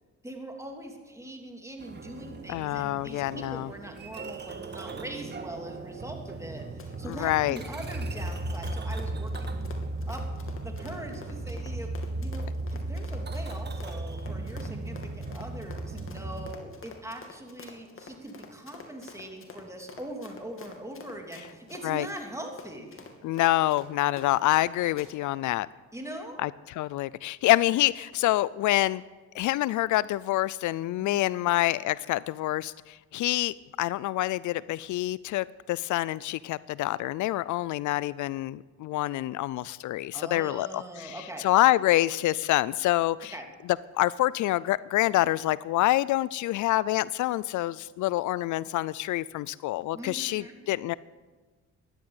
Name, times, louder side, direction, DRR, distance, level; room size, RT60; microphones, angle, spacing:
voice 1, 0.2-9.6 10.1-10.2 10.6-11.9 12.2-23.1 25.9-26.4 31.0-31.5 40.1-41.4 43.3-43.4 49.9-50.6, right 1 dB, 10° right, 2 dB, 3.0 m, -42 dB
sound 1, 1.8-16.5, right 2 dB, 35° right, 1.6 m, -36 dB
voice 2, 2.5-3.7 7.1-7.6 21.8-22.1 23.2-25.7 26.4-26.5 26.8-29.0 29.3-43.3 43.9-50.9, left 16 dB, 75° left, 20 dB, 0.5 m, -26 dB
Run, 6.5-24.7 25.0-25.1, left 4 dB, 45° left, 2.6 m, -48 dB
14.5 x 11.0 x 8.9 m, 1.3 s
cardioid pair, 90°, 30 cm